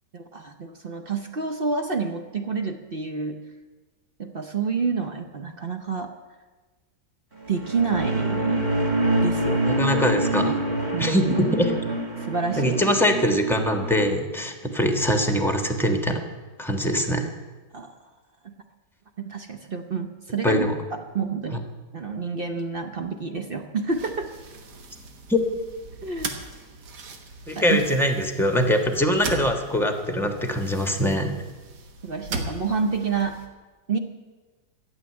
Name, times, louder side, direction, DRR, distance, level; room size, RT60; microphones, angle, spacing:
voice 1, 0.1-3.4 4.2-6.1 7.5-8.7 9.2-9.6 10.9-11.3 12.2-12.8 17.7-17.9 18.4-18.5 19.2-20.6 20.9-21.6 21.9-24.3 26.0-26.3 27.6-27.8 32.0-33.4 33.9-34.0, right 5 dB, 45° right, 5 dB, 0.8 m, -28 dB
sound 1, 7.4-14.1, right 1 dB, 30° right, 1.4 m, -26 dB
voice 2, 9.6-10.6 11.0-11.7 12.6-16.2 16.6-17.3 20.4-20.7 25.3-25.4 27.5-31.3, equal, ahead, 5 dB, 1.1 m, -23 dB
sound 2, 23.9-33.5, right 3 dB, 75° right, 1.9 m, -39 dB
13.0 x 7.4 x 9.7 m, 1.3 s
omnidirectional pair, 1.8 m